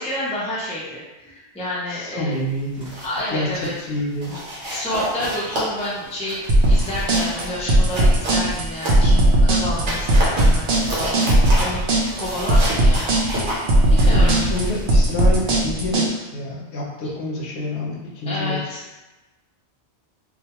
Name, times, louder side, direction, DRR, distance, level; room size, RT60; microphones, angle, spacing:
voice 1, 0.0-2.4 3.0-3.7 4.7-13.2 13.9-14.4 18.3-18.8, left 1 dB, 10° left, -6 dB, 0.3 m, -29 dB
voice 2, 1.9-2.9 3.3-3.5 3.8-4.3 14.0-18.6, left 1 dB, 75° left, -2 dB, 0.8 m, -27 dB
sound 1, 2.6-3.2 3.5-3.8 4.2-9.3 9.7-15.6, equal, 75° right, 1.1 m, -30 dB
sound 2, 6.5-16.1, right 1 dB, 60° right, 0.7 m, -17 dB
2.3 x 2.2 x 2.8 m, 1.1 s
omnidirectional pair, 1.2 m